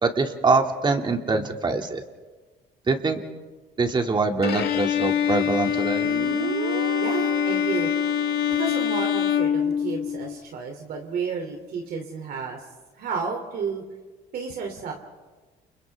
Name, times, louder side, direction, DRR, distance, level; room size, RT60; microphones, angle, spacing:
voice 1, 0.0-2.0 2.9-3.2 3.8-6.0, right 3 dB, 25° right, 3 dB, 2.5 m, -23 dB
Bowed string instrument, 4.4-10.3, left 9 dB, 70° left, 1.5 m, -24 dB
Guitar, 6.0-9.5, right 10 dB, 85° right, 1.4 m, -35 dB
voice 2, 7.0-7.9 8.5-12.6 12.9-13.8 14.3-14.9, right 5 dB, 65° right, 2 dB, 3.1 m, -31 dB
29.5 x 29.5 x 3.6 m, 1.3 s
cardioid pair, 110°, 17 cm